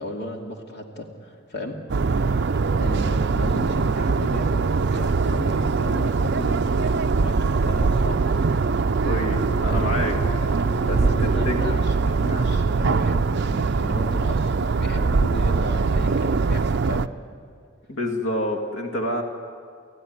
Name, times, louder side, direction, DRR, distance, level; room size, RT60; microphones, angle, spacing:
voice 1, 0.0-4.7 4.9-8.3 9.6-9.9 11.0-17.1, left 1 dB, 55° left, 2 dB, 2.5 m, -34 dB
sound 1, 1.9-17.1, right 4 dB, 55° right, 0.5 m, -22 dB
Wind instrument woodwind instrument, 7.7-12.7, left 2 dB, 15° left, 1.7 m, -39 dB
voice 2, 9.0-10.1 10.9-11.5 17.9-19.2, left 1 dB, 85° left, 3 dB, 2.4 m, -27 dB
29.5 x 15.5 x 9.6 m, 2.2 s
head